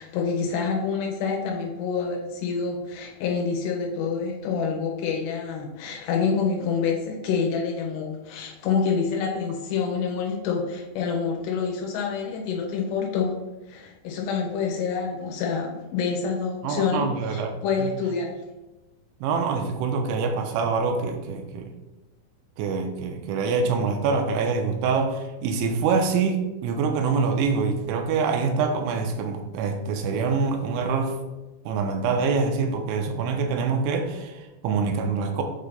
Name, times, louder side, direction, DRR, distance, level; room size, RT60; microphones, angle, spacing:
voice 1, 0.0-13.4 13.7-18.3, left 5 dB, 75° left, 2.8 m, -27 dB
voice 2, 16.6-17.5 17.8-17.9 19.2-21.6 22.6-31.1 31.7-35.4, right 5 dB, 90° right, 3.0 m, -25 dB
8.0 x 2.8 x 5.1 m
omnidirectional pair, 5.4 m